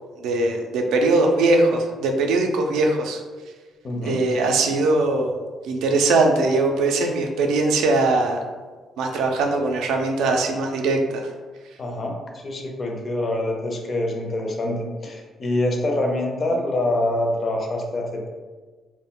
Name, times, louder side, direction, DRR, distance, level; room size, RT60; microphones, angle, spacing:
voice 1, 0.2-3.2 4.0-8.4 9.0-11.3, right 2 dB, 90° right, 2 dB, 0.3 m, -21 dB
voice 2, 3.8-4.2 11.8-18.3, left 1 dB, 40° left, 2 dB, 0.5 m, -25 dB
2.1 x 2.1 x 3.6 m, 1.4 s
cardioid pair, 90°, 0 cm